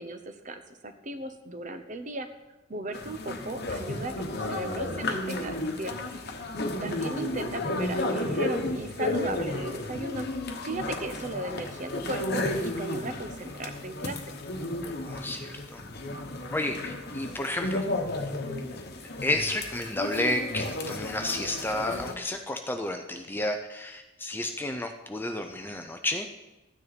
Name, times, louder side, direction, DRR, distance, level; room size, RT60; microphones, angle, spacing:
voice 1, 0.0-2.3 2.7-6.0 6.8-10.2 10.6-14.2, right 2 dB, 35° right, 8 dB, 0.8 m, -36 dB
sound 1, 2.9-22.1, left 2 dB, 45° left, 1.1 m, -33 dB
voice 2, 15.0-15.8 16.5-17.8 19.2-26.3, left 1 dB, 10° left, 5 dB, 0.5 m, -31 dB
13.5 x 9.6 x 4.2 m, 1.0 s
head